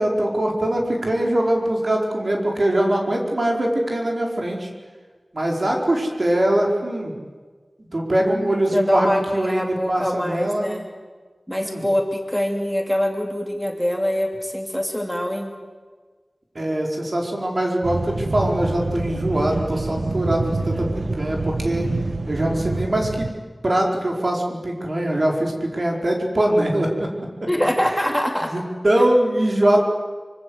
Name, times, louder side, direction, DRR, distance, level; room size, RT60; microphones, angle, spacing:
voice 1, 0.0-4.7 5.3-7.1 7.9-10.7 11.6-11.8 16.5-21.9 22.3-23.3 23.6-27.1 27.4-27.5 28.5-29.8, right 1 dB, 55° right, 0 dB, 4.7 m, -22 dB
voice 2, 8.2-10.9 11.5-15.5 27.5-28.5, equal, ahead, 2 dB, 3.0 m, -24 dB
sound 1, 17.8-23.3, right 3 dB, 70° right, 1.5 m, -26 dB
24.5 x 24.5 x 8.0 m, 1.4 s
wide cardioid pair, 65°, 0 cm